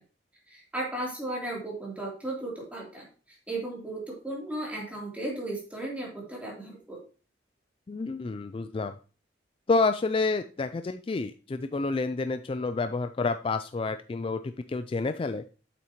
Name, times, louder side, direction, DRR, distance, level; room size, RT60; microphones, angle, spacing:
voice 1, 0.5-3.1 3.5-7.0, right 1 dB, 5° right, -4 dB, 3.2 m, -35 dB
voice 2, 7.9-8.9 9.7-15.4, left 3 dB, 30° left, 10 dB, 0.3 m, -29 dB
8.4 x 7.0 x 3.0 m, 0.36 s
head